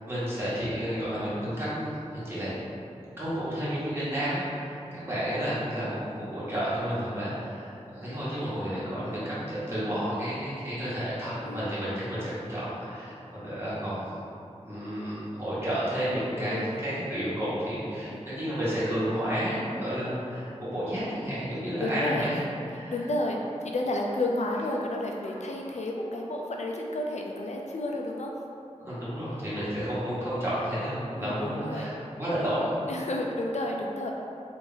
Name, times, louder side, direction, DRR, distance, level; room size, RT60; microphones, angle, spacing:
voice 1, 0.1-2.5 3.2-14.2 14.6-22.9 28.8-32.7, equal, 20° right, -11 dB, 1.3 m, -31 dB
voice 2, 16.5-16.9 18.0-18.2 21.5-22.3 22.7-28.3 29.7-29.9 31.1-32.0 32.9-34.1, left 1 dB, 70° left, 0 dB, 0.4 m, -31 dB
3.3 x 2.5 x 3.6 m, 2.7 s
wide cardioid pair, 70°, 12 cm